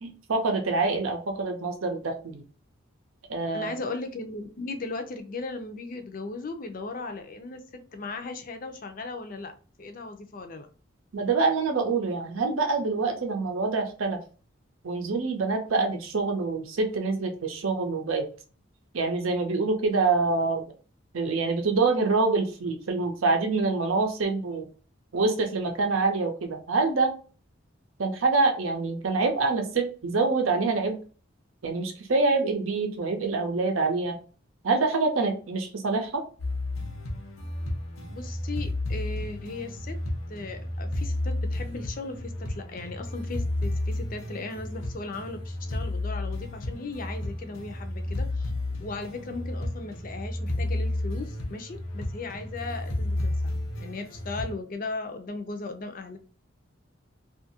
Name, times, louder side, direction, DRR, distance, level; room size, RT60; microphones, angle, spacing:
voice 1, 0.0-2.4 3.3-3.7 11.1-14.2 14.8-18.2 18.9-20.7 21.1-24.6 25.1-27.1 28.0-31.0 31.6-34.2 34.6-36.2, right 3 dB, 80° right, 3 dB, 0.6 m, -26 dB
voice 2, 3.5-7.6 7.9-9.5 9.8-10.7 38.1-40.0 40.3-48.5 48.8-53.5 53.8-56.2, left 3 dB, 40° left, 6 dB, 0.5 m, -37 dB
sound 1, 36.4-54.5, left 1 dB, 85° left, 0.8 m, -32 dB
2.6 x 2.4 x 2.7 m, 0.38 s
head